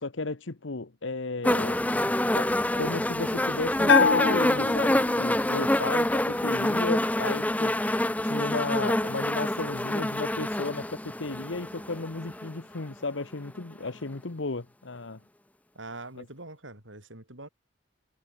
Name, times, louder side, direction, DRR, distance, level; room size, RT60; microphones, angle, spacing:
voice 1, 0.0-1.8 2.3-7.8 8.2-15.2 16.2-16.3, left 3 dB, 85° left, 1.2 m, -34 dB
sound 1, 1.4-12.5 13.5-13.6, left 1 dB, 10° left, 0.7 m, -26 dB
Bell, 3.9-5.5, left 5 dB, 60° left, 0.7 m, -24 dB
voice 2, 15.7-17.5, right 2 dB, 85° right, 7.8 m, -43 dB
head